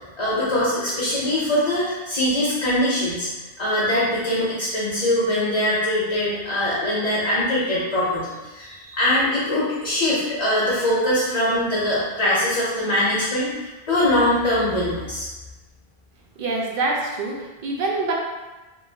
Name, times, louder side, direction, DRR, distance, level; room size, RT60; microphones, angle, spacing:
voice 1, 0.2-3.3 3.6-15.3, left 1 dB, 40° left, -8 dB, 0.7 m, -22 dB
voice 2, 16.4-18.1, right 3 dB, 60° right, -1 dB, 0.7 m, -25 dB
2.8 x 2.5 x 2.7 m, 1.2 s
omnidirectional pair, 1.1 m